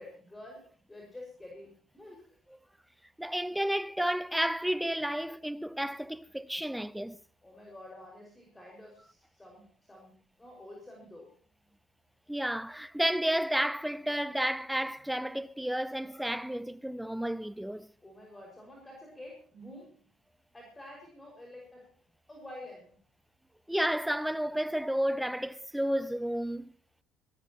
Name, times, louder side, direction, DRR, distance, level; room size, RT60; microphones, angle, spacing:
voice 1, 0.0-2.4 7.4-11.3 18.0-20.0 20.5-22.0 22.3-22.9, left 1 dB, 15° left, 5.8 m, -49 dB
voice 2, 3.2-7.2 12.3-17.9 23.7-26.7, equal, 5° right, 0.8 m, -31 dB
19.5 x 17.5 x 3.0 m
hypercardioid pair, 60°, 0 cm